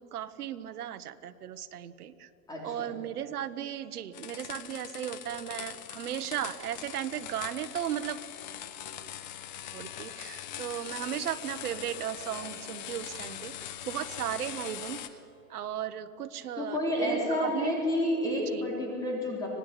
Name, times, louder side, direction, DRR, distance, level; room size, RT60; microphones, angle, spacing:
voice 1, 0.0-2.3 2.6-8.2 9.7-15.0 15.5-17.8 18.5-18.6, right 11 dB, 70° right, 10 dB, 1.4 m, -36 dB
voice 2, 2.5-2.9 16.6-19.5, left 1 dB, 10° left, -1 dB, 3.4 m, -30 dB
sound 1, 4.1-15.1, left 11 dB, 30° left, 1.0 m, -42 dB
25.5 x 17.5 x 8.2 m, 2.8 s
supercardioid pair, 175°, 46 cm